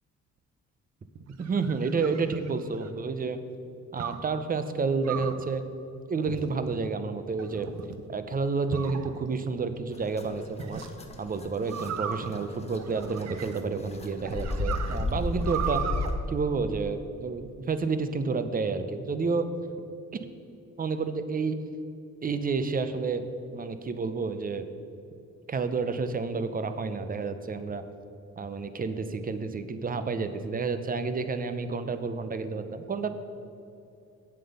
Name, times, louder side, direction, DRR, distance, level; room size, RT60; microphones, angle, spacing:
sound 1, 1.2-3.0 4.0-4.3 5.0-5.5 6.3-6.8 7.4-8.0 8.7-9.5 10.6-10.9 11.7-13.8 14.2-16.1, right 7 dB, 60° right, 0.8 m, -37 dB
voice 1, 1.4-3.4 3.9-5.6 6.1-7.7 8.1-10.8 11.2-15.8 16.3-19.5 20.8-21.6 22.2-23.2 23.5-24.7 25.5-27.8 28.4-33.1, right 4 dB, 30° right, 10 dB, 0.7 m, -30 dB
sound 2, 9.9-16.1, left 2 dB, 20° left, 1.0 m, -34 dB
8.9 x 7.6 x 5.4 m, 2.7 s
cardioid pair, 90°, 30 cm